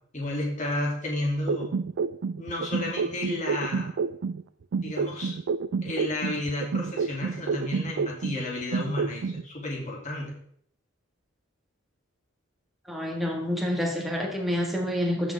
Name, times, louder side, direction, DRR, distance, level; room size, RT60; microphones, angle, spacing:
voice 1, 0.1-1.7 2.4-3.9 4.8-5.4 5.8-10.3, left 1 dB, 40° left, -3 dB, 2.6 m, -32 dB
sound 1, 1.5-4.4 4.7-8.4 8.7-9.4, right 5 dB, 65° right, 0.4 m, -29 dB
voice 2, 12.9-15.3, left 1 dB, ahead, -1 dB, 1.6 m, -28 dB
14.0 x 6.0 x 3.5 m, 0.64 s
head